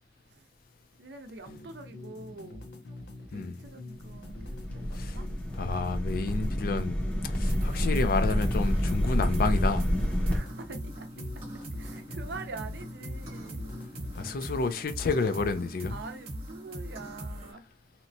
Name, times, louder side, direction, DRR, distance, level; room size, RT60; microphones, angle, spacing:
voice 1, 1.0-2.6 3.3-5.3 7.4-7.7 10.3-13.6 14.4-14.5 15.9-17.7, right 3 dB, 70° right, 0.5 m, -45 dB
sound 1, 1.5-14.4, left 2 dB, 70° left, 0.7 m, -45 dB
sound 2, 4.1-10.4, equal, 5° left, 0.6 m, -28 dB
voice 2, 5.6-7.0 7.2-9.8 14.2-16.0, left 4 dB, 55° left, 0.4 m, -30 dB
sound 3, 7.4-17.5, right 1 dB, 35° right, 1.0 m, -40 dB
2.9 x 2.1 x 2.6 m
head